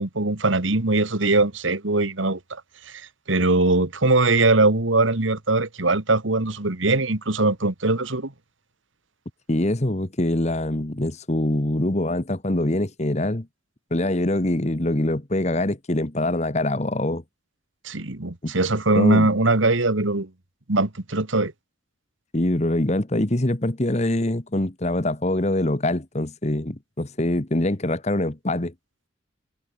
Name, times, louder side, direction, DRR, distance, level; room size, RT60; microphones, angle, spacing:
voice 1, 0.0-8.3 17.8-20.3 20.7-21.5, right 2 dB, 75° right, 2.0 m, -21 dB
voice 2, 9.5-13.5 13.9-17.2 18.4-18.5 18.9-19.3 22.3-28.7, left 1 dB, 35° left, 1.3 m, -24 dB
head